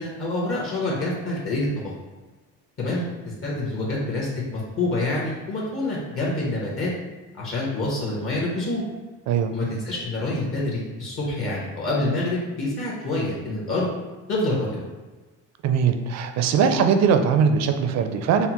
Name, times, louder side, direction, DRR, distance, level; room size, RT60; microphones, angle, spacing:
voice 1, 0.0-1.9 2.8-6.9 7.4-8.8 9.5-13.9 14.3-14.8, left 2 dB, 45° left, -5 dB, 1.0 m, -27 dB
voice 2, 15.6-18.5, right 6 dB, 55° right, 7 dB, 0.5 m, -20 dB
5.6 x 2.1 x 2.9 m, 1.2 s
cardioid pair, 120°, 32 cm